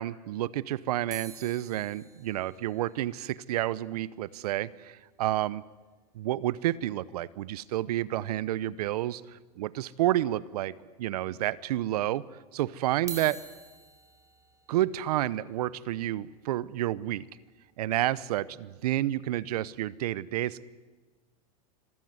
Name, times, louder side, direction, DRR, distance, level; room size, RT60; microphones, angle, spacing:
voice 1, 0.0-5.6 6.1-9.2 9.6-10.7 11.0-12.2 12.5-13.4 14.7-17.2 17.8-20.6, right 14 dB, 70° right, 20 dB, 0.8 m, -30 dB
sound 1, 1.1-5.4 5.7-5.8 6.0-6.2 6.6-6.7 8.1-8.2 8.8-9.4 9.9-10.0 10.8-10.9 12.9-19.0 19.6-19.8, right 5 dB, 15° right, 3.0 m, -50 dB
26.0 x 15.0 x 9.6 m, 1.3 s
supercardioid pair, 145°, 20 cm